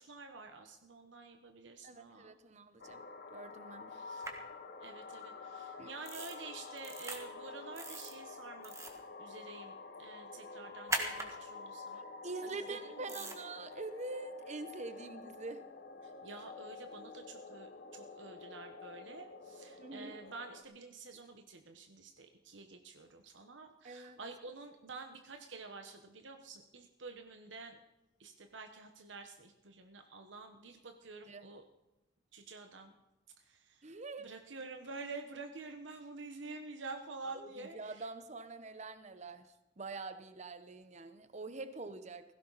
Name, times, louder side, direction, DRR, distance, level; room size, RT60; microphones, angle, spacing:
voice 1, 0.0-2.4 3.9-4.3 4.8-12.0 12.4-13.3 16.0-27.8 28.2-31.6 32.3-33.0 33.5-33.8 34.2-38.0, right 3 dB, 85° right, 5 dB, 1.2 m, -49 dB
voice 2, 1.8-3.0 3.3-3.9 5.8-5.9 12.2-15.6 19.8-20.2 23.8-24.2 31.2-31.5 33.8-34.3 37.3-39.5 39.8-42.2, right 3 dB, 40° right, 11 dB, 1.0 m, -45 dB
sound 1, 2.8-20.6, left 4 dB, 55° left, 1.2 m, -49 dB
sound 2, 4.2-4.3 6.0-6.3 6.8-7.2 7.8-8.1 8.6-9.0 10.9-11.3 13.1-13.4, right 2 dB, 15° right, 1.7 m, -39 dB
17.0 x 16.0 x 4.1 m, 0.98 s
head